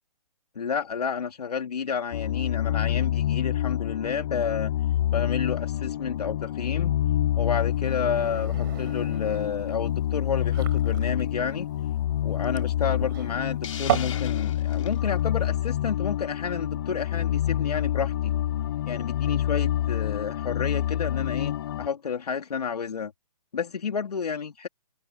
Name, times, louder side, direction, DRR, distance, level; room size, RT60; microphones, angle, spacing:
voice 1, 0.6-4.7 5.1-7.0 7.4-11.7 12.2-18.3 18.9-23.1 23.5-24.7, left 6 dB, 90° left, 2.6 m, -30 dB
sound 1, 2.1-21.9, left 12 dB, 40° left, 5.2 m, -27 dB
sound 2, 7.7-14.2, right 14 dB, 35° right, 5.7 m, -35 dB
Hiss, 13.6-15.0, left 8 dB, 55° left, 3.7 m, -38 dB
hypercardioid pair, 165°, 20 cm